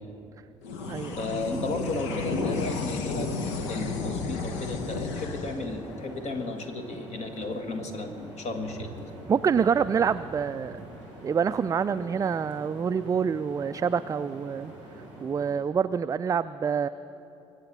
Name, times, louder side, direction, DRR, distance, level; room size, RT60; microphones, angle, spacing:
sound 1, 0.6-7.3, left 4 dB, 70° left, 1.0 m, -33 dB
sound 2, 0.8-15.6, right 1 dB, 85° left, 3.1 m, -45 dB
voice 1, 1.2-9.1, left 3 dB, 45° left, 5 dB, 1.7 m, -34 dB
Bass guitar, 1.5-5.2, right 7 dB, 80° right, 0.5 m, -44 dB
voice 2, 9.3-10.8 11.2-14.7 15.2-16.9, right 6 dB, 20° right, 12 dB, 0.3 m, -26 dB
23.5 x 8.1 x 6.9 m, 2.9 s
figure-of-eight pair, 45°, 15 cm